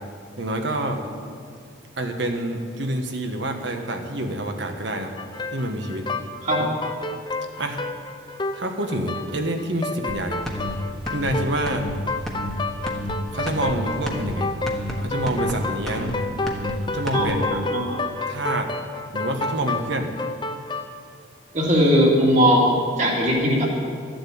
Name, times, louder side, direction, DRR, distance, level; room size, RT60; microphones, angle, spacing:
voice 1, 0.4-1.0 2.0-5.1 5.5-6.1 6.6-6.7 7.6-7.8 8.5-10.4 11.1-11.9 13.3-14.5 15.0-16.2 16.8-17.6 18.3-18.7 19.1-20.1, right 1 dB, 60° right, 5 dB, 1.3 m, -27 dB
sound 1, 5.2-20.9, left 3 dB, 25° left, 0.6 m, -30 dB
sound 2, 10.1-10.2 10.5-10.7 11.1-11.3 11.7-11.9 12.3-12.5 12.9-13.1 13.5-13.7 14.1-14.3 14.7-14.9 15.3-15.5 15.9-16.1 16.5-16.7 17.1-17.3, equal, ahead, 1.3 m, -30 dB
voice 2, 17.1-18.0 21.5-23.7, equal, 35° right, -2 dB, 2.5 m, -19 dB
13.5 x 7.7 x 8.6 m, 2.2 s
head